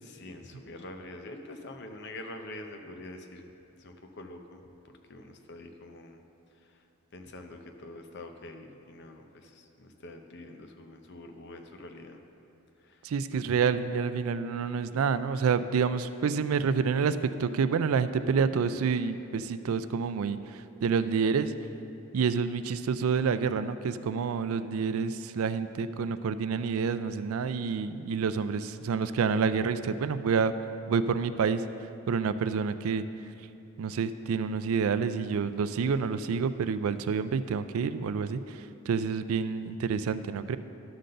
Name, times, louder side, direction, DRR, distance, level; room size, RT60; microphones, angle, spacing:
voice 1, 0.0-3.5 3.8-6.2 6.6-6.8 7.1-12.2 12.8-13.0 13.3-13.4, left 2 dB, 55° left, 5 dB, 0.7 m, -45 dB
voice 2, 13.0-21.5 22.1-30.5 30.9-31.6 32.1-33.0 33.8-38.6 38.9-40.6, right 6 dB, 85° right, 12 dB, 0.4 m, -28 dB
11.0 x 3.9 x 6.6 m, 2.8 s
head